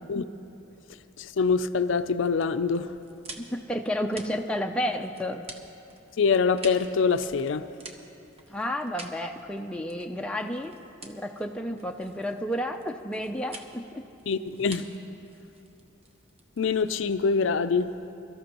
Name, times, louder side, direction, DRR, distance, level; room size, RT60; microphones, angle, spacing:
voice 1, 1.2-3.0 6.2-7.7 14.3-14.9 16.6-17.9, left 5 dB, 65° left, 0.4 m, -24 dB
sound 1, 2.7-17.4, right 2 dB, 30° right, 0.8 m, -48 dB
voice 2, 3.3-5.5 8.5-10.7 11.0-14.1, equal, 5° left, 0.4 m, -31 dB
23.5 x 13.0 x 2.9 m
head